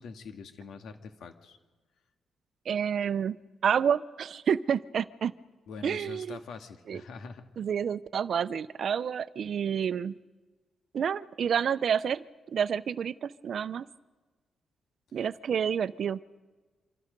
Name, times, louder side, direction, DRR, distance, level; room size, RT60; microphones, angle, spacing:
voice 1, 0.0-1.6 5.7-7.5, left 5 dB, 80° left, 6 dB, 2.2 m, -44 dB
voice 2, 2.7-3.4 3.6-5.3 5.8-6.4 6.9-7.0 7.6-10.1 10.9-13.9 15.1-16.2, right 7 dB, 60° right, 16 dB, 0.7 m, -29 dB
27.5 x 26.0 x 5.4 m, 1.3 s
cardioid pair, 105°, 0 cm